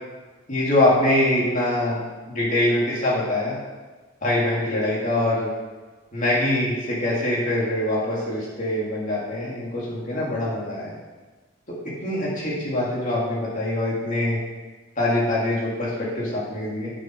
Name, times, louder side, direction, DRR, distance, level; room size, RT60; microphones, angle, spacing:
voice 1, 0.5-2.0 2.3-3.6 4.2-5.5 6.1-10.9 11.7-11.8 12.0-14.4 15.0-16.9, left 1 dB, 40° left, -6 dB, 3.2 m, -23 dB
8.8 x 7.0 x 5.6 m, 1.3 s
head